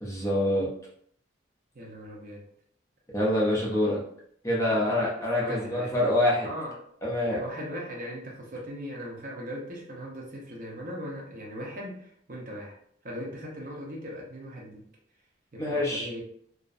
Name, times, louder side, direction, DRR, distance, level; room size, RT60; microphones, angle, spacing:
voice 1, 0.0-0.7 3.1-4.0 4.4-6.5 7.0-7.4 15.6-16.1, left 1 dB, 15° left, -5 dB, 0.5 m, -26 dB
voice 2, 1.7-2.4 3.6-3.8 4.7-6.0 6.4-6.9 7.2-12.8 13.0-14.9 15.5-16.2, equal, 45° right, -3 dB, 0.6 m, -39 dB
2.5 x 2.0 x 2.4 m, 0.65 s
head